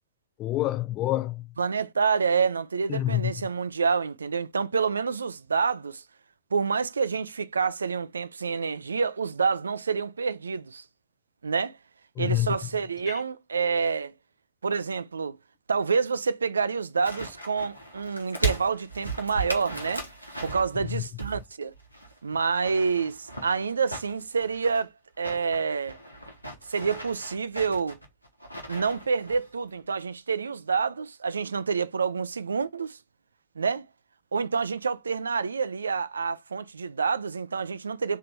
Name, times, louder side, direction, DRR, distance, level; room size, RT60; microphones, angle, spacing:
voice 1, 0.4-1.5 2.9-3.3 12.2-12.6 13.1-13.2 20.9-21.0, left 15 dB, 35° left, 0.4 m, -27 dB
voice 2, 1.6-6.0 6.5-10.8 11.4-11.8 12.2-14.1 14.6-15.4 15.7-20.1 20.4-21.7 22.2-24.9 25.2-26.0 26.7-28.0 28.7-33.0 33.6-33.9 34.3-38.2, right 5 dB, 75° right, 0.3 m, -28 dB
sound 1, 17.0-21.5 21.7-24.8 25.2-29.5 29.7-29.8, right 2 dB, 90° left, 1.0 m, -37 dB
3.6 x 2.8 x 4.4 m
figure-of-eight pair, 90°, 0 cm